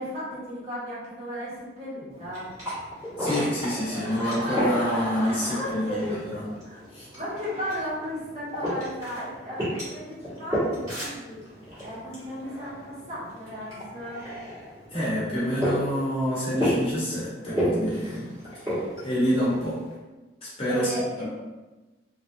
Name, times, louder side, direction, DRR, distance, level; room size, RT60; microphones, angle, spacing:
voice 1, 0.0-2.5 5.5-6.2 6.6-6.8 7.1-11.4 11.8-14.3 20.7-21.3, equal, 35° right, -9 dB, 1.2 m, -35 dB
sound 1, 2.1-19.9, equal, 15° right, 1.3 m, -33 dB
voice 2, 3.2-6.4 6.9-7.1 14.9-18.3 18.5-18.8 19.0-19.8 20.4-21.3, equal, 30° left, -8 dB, 1.1 m, -27 dB
Laughter / Crowd, 3.7-6.5, equal, 10° left, 1.2 m, -35 dB
3.2 x 2.5 x 2.7 m, 1.1 s
head